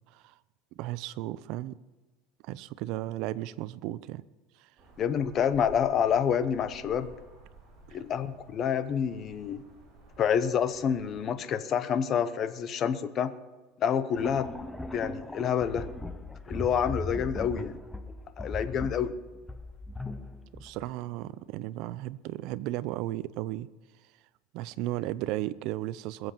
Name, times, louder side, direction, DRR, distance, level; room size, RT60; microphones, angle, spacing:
voice 1, 0.8-1.8 2.4-4.2 7.9-8.0 20.6-23.7 24.5-26.3, right 15 dB, 55° right, 17 dB, 0.5 m, -35 dB
sound 1, 4.8-11.3, right 3 dB, 25° right, 5.4 m, -53 dB
voice 2, 5.0-7.1 7.9-9.6 10.2-13.3 13.8-14.5 14.9-15.9 16.5-17.8 18.4-19.1, left 8 dB, 35° left, 12 dB, 0.8 m, -28 dB
sound 2, 14.1-21.0, left 2 dB, 5° left, 0.7 m, -39 dB
21.5 x 7.8 x 5.8 m, 1.2 s
supercardioid pair, 150°, 0 cm